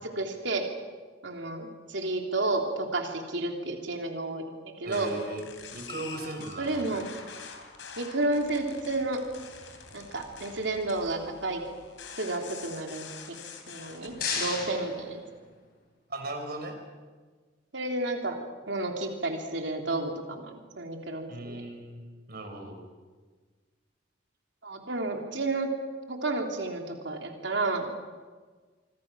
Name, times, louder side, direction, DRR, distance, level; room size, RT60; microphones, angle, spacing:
voice 1, 0.0-0.6 1.2-5.1 6.6-7.1 8.0-9.2 9.9-11.6 12.2-13.0 13.7-15.2 17.7-18.3 18.7-21.6 24.6-25.7 26.1-27.9, right 2 dB, 70° right, 3 dB, 3.3 m, -31 dB
sound 1, 4.8-14.1, left 5 dB, 80° left, 3.8 m, -46 dB
voice 2, 4.8-5.4 5.7-6.9 16.1-16.7 21.3-22.0 22.3-22.8, right 2 dB, 55° right, 4 dB, 5.1 m, -37 dB
sound 2, 13.6-15.9, left 5 dB, 55° left, 5.5 m, -35 dB
26.5 x 24.5 x 6.3 m, 1.4 s
head